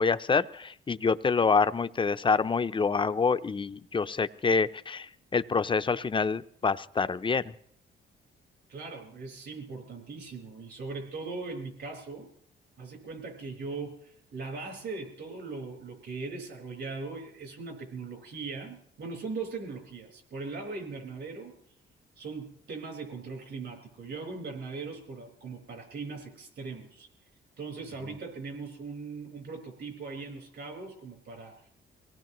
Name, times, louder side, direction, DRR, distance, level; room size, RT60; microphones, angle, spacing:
voice 1, 0.0-7.5, left 5 dB, 25° left, 12 dB, 0.5 m, -27 dB
voice 2, 8.7-12.3 12.8-21.5 22.2-27.1 27.6-31.6, right 4 dB, 65° right, 2 dB, 4.7 m, -39 dB
24.5 x 18.0 x 3.1 m, 0.64 s
cardioid pair, 90°, 20 cm